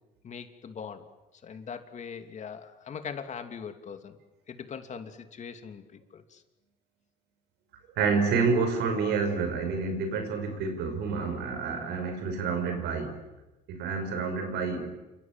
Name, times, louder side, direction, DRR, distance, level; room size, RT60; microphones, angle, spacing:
voice 1, 0.2-1.1 1.4-4.2 4.5-6.4, left 6 dB, 45° left, 8 dB, 2.7 m, -41 dB
voice 2, 8.0-13.2 13.7-14.9, right 5 dB, 85° right, 7 dB, 6.0 m, -28 dB
29.0 x 26.0 x 7.6 m, 1.1 s
cardioid pair, 110°, 17 cm